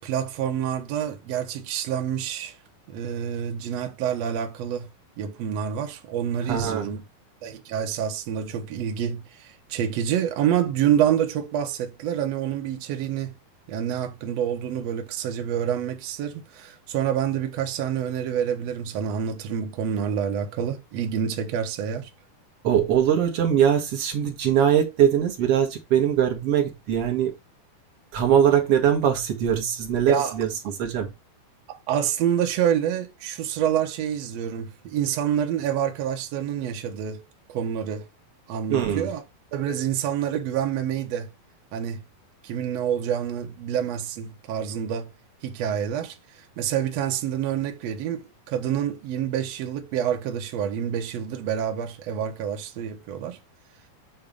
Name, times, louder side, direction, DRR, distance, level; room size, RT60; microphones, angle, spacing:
voice 1, 0.0-2.5 2.9-4.9 5.2-7.0 7.4-13.3 13.7-22.1 30.1-30.3 31.7-37.2 37.5-38.1 38.5-39.2 39.5-41.3 41.7-42.0 42.4-45.1 45.4-53.4, right 9 dB, 90° right, 1.4 m, -27 dB
voice 2, 6.4-7.0 22.6-27.3 28.1-31.1 38.7-39.1, right 9 dB, 60° right, 1.6 m, -22 dB
8.5 x 3.0 x 5.2 m
omnidirectional pair, 4.4 m